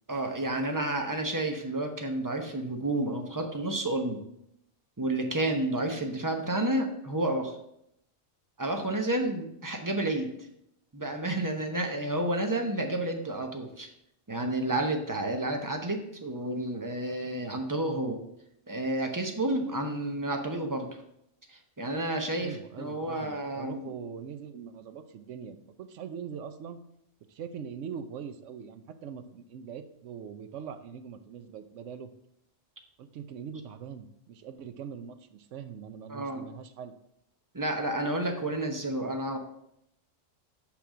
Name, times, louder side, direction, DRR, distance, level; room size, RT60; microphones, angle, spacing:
voice 1, 0.1-4.2 5.0-7.6 8.6-10.3 10.9-13.9 14.3-18.2 18.7-20.9 21.5-23.9 36.1-36.4 37.5-39.4, right 1 dB, 20° right, 4 dB, 0.7 m, -30 dB
voice 2, 22.4-26.8 27.3-32.1 33.0-36.9, right 7 dB, 75° right, 9 dB, 1.0 m, -42 dB
5.9 x 5.9 x 4.9 m, 0.77 s
omnidirectional pair, 1.3 m